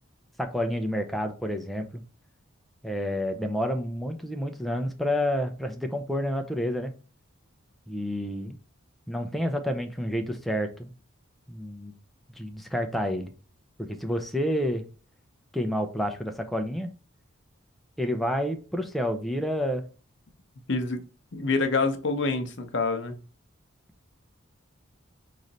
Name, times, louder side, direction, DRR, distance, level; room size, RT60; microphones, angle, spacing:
voice 1, 0.4-2.0 2.8-6.9 7.9-8.6 9.1-10.9 11.5-11.9 12.4-13.3 13.8-14.9 15.5-16.9 18.0-19.8, equal, ahead, 0.5 m, -29 dB
voice 2, 20.7-21.0 21.3-23.2, left 3 dB, 60° left, 0.7 m, -26 dB
3.9 x 3.2 x 4.0 m
head